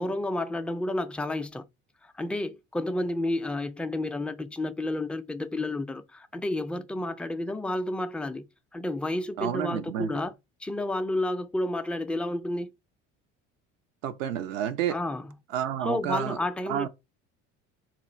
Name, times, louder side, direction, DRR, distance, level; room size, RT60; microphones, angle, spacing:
voice 1, 0.0-1.7 2.0-12.7 14.9-15.4 15.8-16.9, left 1 dB, 5° left, 0.3 m, -31 dB
voice 2, 9.4-10.1 14.0-15.0 15.5-16.4 16.7-16.9, right 10 dB, 80° right, 0.6 m, -30 dB
2.9 x 2.3 x 4.2 m
hypercardioid pair, 65°, 38 cm